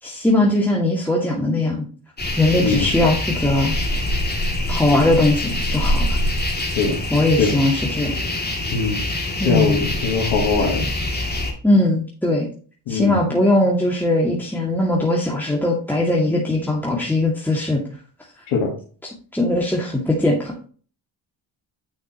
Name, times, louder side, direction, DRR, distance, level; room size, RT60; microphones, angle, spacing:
voice 1, 0.0-1.8 2.4-3.7 4.7-6.2 7.1-8.2 9.4-9.9 11.6-12.5 12.9-17.8 19.3-20.5, left 1 dB, 5° left, -3 dB, 2.3 m, -20 dB
sound 1, 2.2-11.5, left 1 dB, 20° left, 2.6 m, -24 dB
voice 2, 8.7-9.0 9.4-10.9 12.9-13.3 18.5-18.7, left 4 dB, 80° left, -1 dB, 1.9 m, -21 dB
9.7 x 5.8 x 3.0 m, 0.41 s
supercardioid pair, 50°, 47 cm